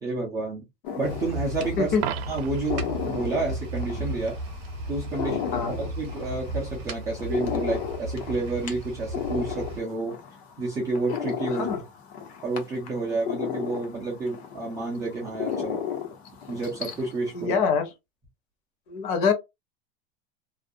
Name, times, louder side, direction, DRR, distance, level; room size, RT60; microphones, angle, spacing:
voice 1, 0.0-0.6 1.0-1.9 2.3-4.4 4.9-10.2 10.6-11.7 12.4-15.8 16.5-17.6, right 3 dB, 10° right, 0.3 m, -30 dB
sound 1, 0.8-17.5, left 8 dB, 85° left, 1.0 m, -35 dB
sound 2, 1.0-9.8, right 2 dB, 45° right, 0.7 m, -35 dB
Coin (dropping), 1.9-2.8 8.9-9.0, right 11 dB, 85° right, 0.5 m, -34 dB
voice 2, 5.2-5.7 11.5-11.8 17.3-17.9 18.9-19.3, left 5 dB, 55° left, 0.8 m, -25 dB
2.4 x 2.1 x 2.6 m
supercardioid pair, 180°, 31 cm